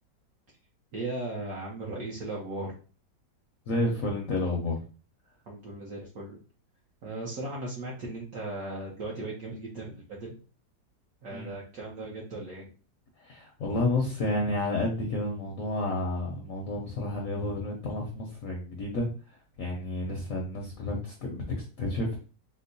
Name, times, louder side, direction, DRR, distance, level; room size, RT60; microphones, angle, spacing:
voice 1, 0.9-2.7 5.5-6.4 7.0-10.4 11.2-12.7, right 2 dB, 65° right, -4 dB, 1.0 m, -37 dB
voice 2, 3.7-4.8 11.3-11.5 13.2-19.1 19.6-22.2, left 2 dB, 65° left, 0 dB, 0.8 m, -30 dB
4.4 x 2.0 x 2.6 m, 0.37 s
omnidirectional pair, 1.9 m